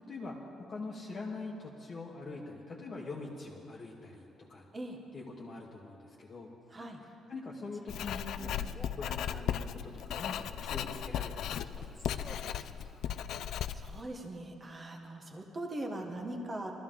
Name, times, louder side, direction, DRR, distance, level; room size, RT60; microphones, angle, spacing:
voice 1, 0.1-4.7 5.1-6.5 7.3-8.6 8.9-13.1, left 3 dB, 30° left, -4 dB, 1.2 m, -44 dB
Male speech man speaking, 6.7-7.0 7.7-8.0 8.7-9.1 10.1-10.4 11.7-12.5, left 1 dB, 5° left, 0.5 m, -54 dB
voice 2, 6.7-7.0 13.7-16.7, right 1 dB, 20° right, 1 dB, 1.1 m, -40 dB
Writing, 7.9-14.0, left 9 dB, 65° left, 0.4 m, -36 dB
21.0 x 13.5 x 3.8 m, 2.7 s
cardioid pair, 160°, 0 cm